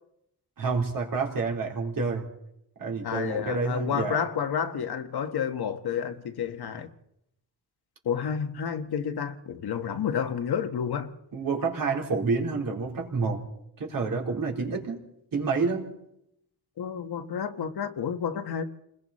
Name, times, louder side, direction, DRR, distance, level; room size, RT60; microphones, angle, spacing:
voice 1, 0.6-2.2 2.8-4.2 11.3-13.4 13.8-15.0 15.3-15.9, right 4 dB, 60° right, 4.0 m, -28 dB
voice 2, 3.0-6.9 8.0-11.1 16.8-18.6, left 7 dB, 80° left, 1.5 m, -30 dB
29.5 x 21.0 x 4.2 m
wide cardioid pair, 180°, 38 cm